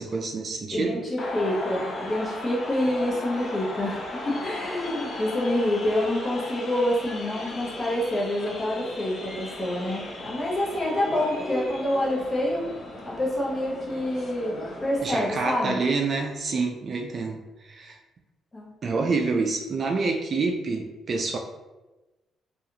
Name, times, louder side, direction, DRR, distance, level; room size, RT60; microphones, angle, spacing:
voice 1, 0.0-1.0 15.0-17.4 17.6-18.0 18.8-21.4, right 4 dB, 45° right, 3 dB, 0.3 m, -27 dB
voice 2, 0.7-12.6 13.0-14.6 14.8-15.8 18.5-18.7, left 1 dB, 25° left, -4 dB, 0.9 m, -27 dB
sound 1, 1.2-15.4, left 2 dB, 45° left, 0.6 m, -36 dB
2.7 x 2.4 x 2.6 m, 1.1 s
cardioid pair, 90°, 0 cm